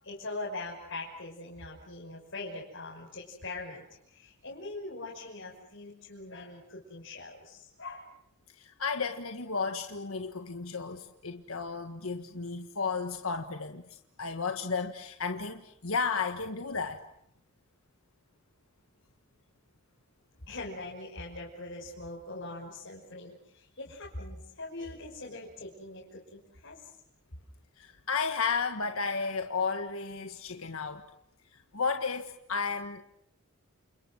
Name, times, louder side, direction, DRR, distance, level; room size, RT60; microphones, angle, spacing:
voice 1, 0.0-8.1 20.5-26.9, left 2 dB, 60° left, 6.1 m, -42 dB
voice 2, 8.6-17.0 27.8-31.1 31.5-33.0, left 5 dB, 80° left, 1.6 m, -33 dB
30.0 x 28.5 x 6.4 m
head